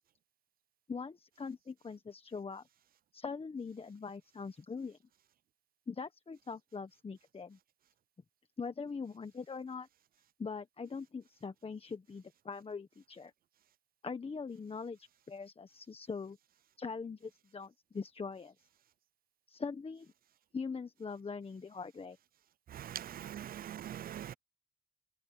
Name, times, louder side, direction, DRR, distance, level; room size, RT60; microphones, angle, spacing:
voice 1, 0.9-2.6 3.1-5.0 5.9-7.6 8.6-9.9 10.4-13.3 14.0-16.4 16.8-18.5 19.5-20.1 20.5-22.2, left 5 dB, 30° left, 1.4 m, -42 dB
voice 2, 22.7-24.3, right 11 dB, 50° right, 0.5 m, -42 dB
cardioid pair, 90°, 20 cm